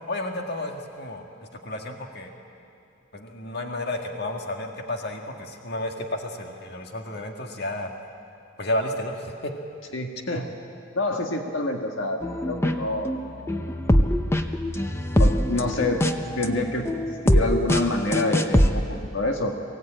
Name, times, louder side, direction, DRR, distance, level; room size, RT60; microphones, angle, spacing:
voice 1, 0.1-1.3 1.6-2.3 3.1-7.9 8.6-9.5, left 1 dB, 55° left, 3 dB, 1.8 m, -31 dB
voice 2, 9.9-10.5 10.9-13.8 15.2-16.1 16.4-19.5, left 2 dB, 75° left, 3 dB, 1.7 m, -27 dB
sound 1, 12.2-18.7, equal, 15° left, 0.7 m, -23 dB
23.0 x 16.5 x 8.8 m, 2.5 s
head